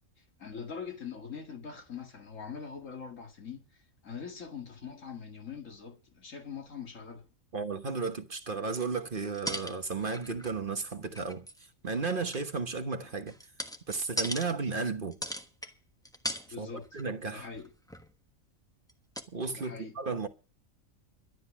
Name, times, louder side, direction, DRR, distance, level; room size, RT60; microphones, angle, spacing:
voice 1, 0.4-3.6 4.0-7.3 16.5-16.9 17.3-17.7 19.5-19.9, left 6 dB, 70° left, 2.3 m, -42 dB
voice 2, 7.5-11.5 11.8-13.3 13.9-15.2 16.6-17.5 19.3-20.3, right 4 dB, 40° right, 1.3 m, -34 dB
sound 1, 9.3-10.6 10.9-11.7 12.1-14.5 15.1-15.7 16.0-16.5 16.8-17.0 17.4-18.1 18.9-19.0 19.2-19.3, equal, 5° left, 1.2 m, -38 dB
12.0 x 10.5 x 6.1 m
omnidirectional pair, 1.4 m